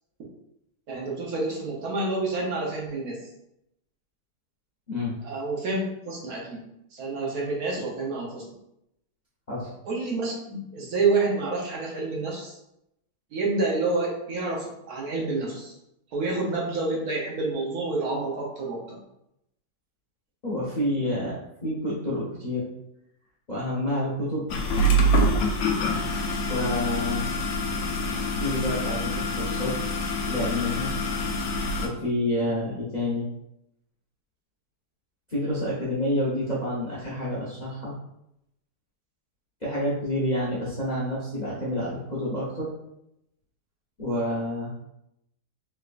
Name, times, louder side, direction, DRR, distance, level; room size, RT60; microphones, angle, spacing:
voice 1, 0.9-3.2 5.2-6.6 6.9-8.4 9.9-12.6 13.3-15.7 16.1-19.0 25.8-26.0, right 3 dB, 65° right, -2 dB, 1.2 m, -28 dB
voice 2, 20.4-22.7 23.5-24.4 26.5-27.3 28.4-29.9 30.2-31.1 31.8-33.3 35.3-37.9 39.6-42.7 44.0-44.8, left 1 dB, 40° left, -8 dB, 0.6 m, -28 dB
sound 1, 24.5-31.9, equal, 70° left, 1.0 m, -26 dB
3.5 x 3.2 x 2.4 m, 0.81 s
omnidirectional pair, 1.8 m